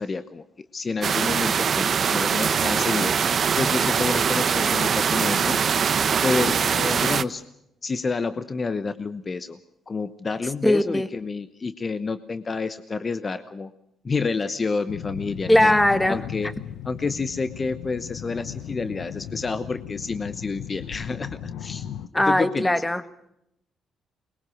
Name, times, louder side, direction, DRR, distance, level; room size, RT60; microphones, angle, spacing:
voice 1, 0.0-3.1 3.6-5.6 6.2-7.4 7.8-9.6 9.9-13.7 14.0-15.8 16.1-16.5 16.8-22.8, left 4 dB, 35° left, 11 dB, 0.9 m, -29 dB
sound 1, 1.0-7.2, right 7 dB, 50° right, 0.8 m, -22 dB
voice 2, 10.6-11.1 15.5-16.2 22.1-23.0, left 1 dB, 10° left, 11 dB, 1.4 m, -19 dB
sound 2, 14.9-22.1, left 10 dB, 90° left, 0.8 m, -37 dB
23.5 x 21.5 x 6.3 m, 0.80 s
cardioid pair, 90°, 0 cm